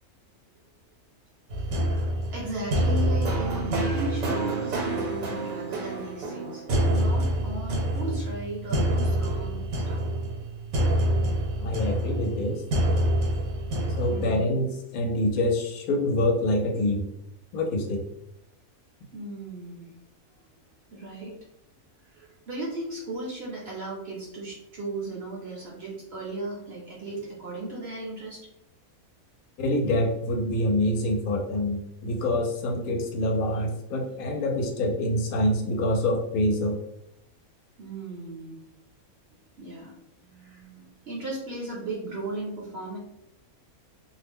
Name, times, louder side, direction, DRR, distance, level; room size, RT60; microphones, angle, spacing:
sound 1, 1.5-14.4, right 1 dB, 70° right, 1.2 m, -27 dB
voice 1, 1.6-10.0 14.1-14.5 19.1-19.9 20.9-21.4 22.0-28.4 37.8-38.6 39.6-39.9 40.2-43.0, right 2 dB, 55° right, -3 dB, 0.8 m, -36 dB
voice 2, 11.6-12.6 13.9-17.1 17.5-18.0 29.6-36.8, left 1 dB, 75° left, 2 dB, 1.0 m, -26 dB
2.7 x 2.0 x 3.4 m, 0.81 s
omnidirectional pair, 1.6 m